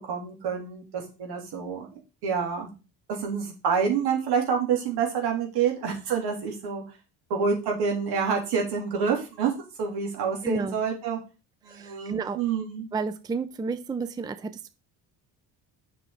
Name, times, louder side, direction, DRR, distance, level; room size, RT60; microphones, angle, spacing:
voice 1, 0.0-1.9 2.2-2.7 3.1-6.8 7.3-9.5 9.8-11.2 11.6-12.8, right 6 dB, 75° right, 1 dB, 3.4 m, -27 dB
voice 2, 10.4-10.8 11.7-12.4 12.9-14.7, right 4 dB, 10° right, 12 dB, 0.4 m, -31 dB
7.8 x 5.9 x 3.9 m, 0.31 s
cardioid pair, 115°, 39 cm